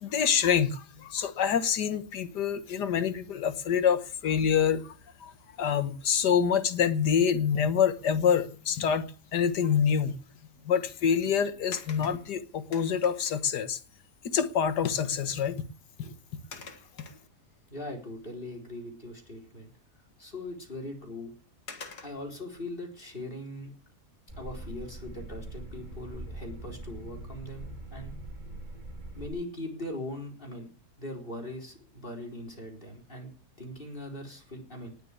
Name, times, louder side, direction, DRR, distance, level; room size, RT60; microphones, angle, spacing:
voice 1, 0.0-5.0 5.2-5.3 5.6-9.0 9.3-10.1 10.6-13.8 14.3-15.6 16.0-16.1, left 7 dB, 90° left, 1.8 m, -26 dB
sound 1, 11.7-13.5 14.7-14.8 15.2-15.5 16.5-17.7 18.2-18.3 20.7-20.8 21.7-22.4 24.7-25.1 25.5-25.6, left 5 dB, 75° left, 2.4 m, -47 dB
voice 2, 17.7-19.7 20.2-21.3 22.0-23.7 24.4-28.2 29.1-30.7 31.0-33.3 33.6-34.9, left 1 dB, 30° left, 4.4 m, -40 dB
sound 2, 24.3-29.3, right 1 dB, 25° right, 2.6 m, -42 dB
19.5 x 6.8 x 8.3 m
omnidirectional pair, 1.7 m